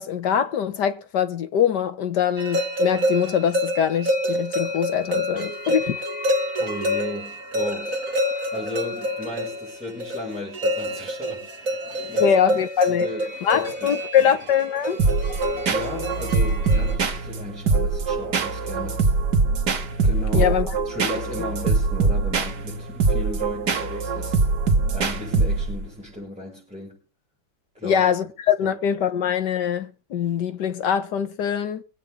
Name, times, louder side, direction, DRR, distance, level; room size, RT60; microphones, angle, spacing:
voice 1, 0.0-6.0 12.2-13.1 13.4-15.0 20.3-20.7 27.8-31.8, left 8 dB, 80° left, 1.7 m, -23 dB
sound 1, 2.4-16.9, equal, 50° right, 2.6 m, -27 dB
voice 2, 6.6-8.0 8.5-12.3 12.9-14.3 15.4-19.2 20.0-24.4 24.9-27.0 27.7-28.0 28.6-28.8, left 1 dB, 5° right, 6.1 m, -35 dB
sound 2, 15.0-25.9, right 4 dB, 70° right, 2.2 m, -23 dB
24.0 x 8.7 x 3.7 m
omnidirectional pair, 1.8 m